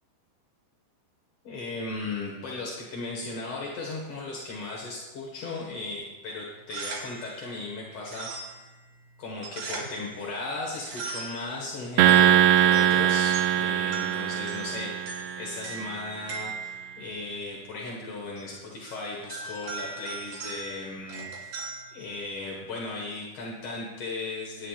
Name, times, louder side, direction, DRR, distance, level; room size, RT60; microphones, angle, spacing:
voice 1, 1.4-8.6 9.2-15.1 15.4-24.7, left 3 dB, 50° left, -3 dB, 1.8 m, -36 dB
sound 1, 6.5-22.7, right 4 dB, 65° right, 4.6 m, -41 dB
sound 2, 12.0-15.5, right 10 dB, 85° right, 2.2 m, -21 dB
20.5 x 10.0 x 2.5 m, 1.1 s
omnidirectional pair, 5.0 m